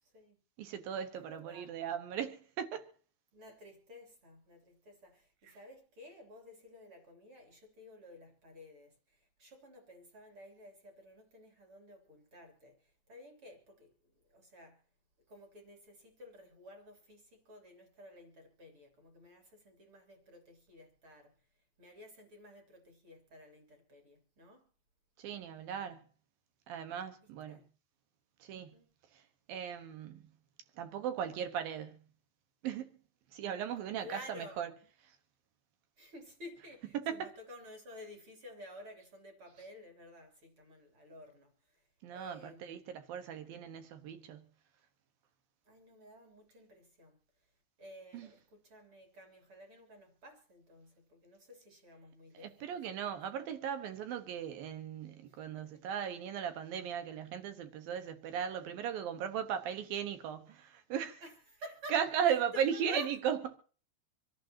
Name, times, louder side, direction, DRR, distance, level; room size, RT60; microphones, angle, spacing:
voice 1, 0.0-0.4 1.1-1.7 3.3-14.8 15.3-21.3 21.8-24.7 27.2-27.7 28.5-28.9 34.0-34.6 36.0-41.8 42.1-42.9 45.6-47.2 47.8-53.2 55.3-56.0 61.2-63.1, equal, 30° right, 3.2 m, -53 dB
voice 2, 0.6-2.9 25.2-26.0 26.7-27.6 28.4-28.7 29.1-29.2 29.5-30.2 30.8-32.0 32.6-32.9 33.3-34.7 36.9-37.3 42.0-44.4 48.1-48.3 52.3-61.2 61.9-63.4, right 8 dB, 65° right, 2.6 m, -37 dB
26.5 x 11.5 x 2.9 m
omnidirectional pair, 5.4 m